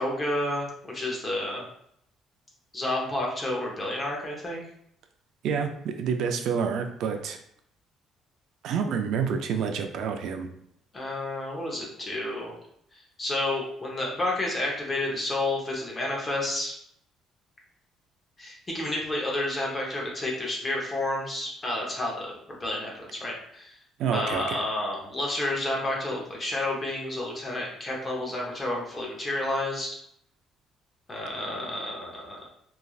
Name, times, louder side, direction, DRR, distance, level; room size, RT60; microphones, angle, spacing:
voice 1, 0.0-1.7 2.7-4.6 10.9-12.5 13.2-16.7 18.4-23.7 24.1-30.0 31.1-32.4, left 1 dB, 25° left, -2 dB, 0.8 m, -30 dB
voice 2, 5.4-7.4 8.6-10.5 24.0-24.6, right 6 dB, 70° right, 6 dB, 0.3 m, -28 dB
3.1 x 2.4 x 2.3 m, 0.70 s
cardioid pair, 130°, 0 cm